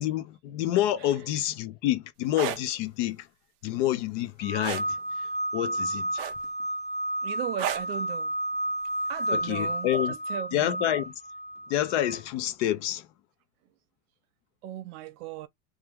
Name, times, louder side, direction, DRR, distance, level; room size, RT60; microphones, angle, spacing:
voice 1, 0.0-3.3 3.6-5.0 5.5-6.2 9.3-10.1 10.5-11.1 11.7-13.1, left 13 dB, 50° left, 0.6 m, -28 dB
sound 1, 2.2-2.6 4.6-4.9 6.2-6.6 7.6-7.9 9.3-9.5, right 11 dB, 35° right, 0.4 m, -31 dB
sound 2, 4.4-12.2, right 1 dB, 5° left, 0.9 m, -32 dB
voice 2, 7.2-8.3 9.1-10.9 14.6-15.5, right 12 dB, 70° right, 0.8 m, -37 dB
3.0 x 2.3 x 3.4 m
supercardioid pair, 155°, 47 cm